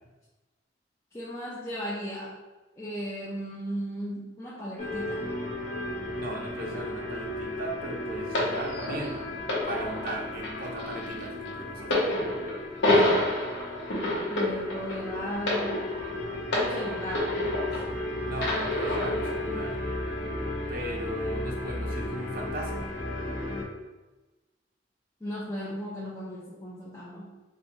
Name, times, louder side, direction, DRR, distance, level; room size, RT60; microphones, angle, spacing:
voice 1, 1.1-2.3 2.8-5.3 14.3-15.7 16.5-17.3 25.2-27.3, equal, 15° left, -8 dB, 0.5 m, -36 dB
sound 1, 4.8-23.6, left 1 dB, 45° left, 0.9 m, -35 dB
voice 2, 6.1-9.2 9.6-12.1 18.2-19.8 20.7-22.9, right 1 dB, 50° right, 1 dB, 0.6 m, -37 dB
sound 2, 8.3-18.0 18.4-19.4 20.2-20.4, left 1 dB, 80° left, 0.9 m, -28 dB
4.3 x 2.2 x 2.8 m, 1.2 s
head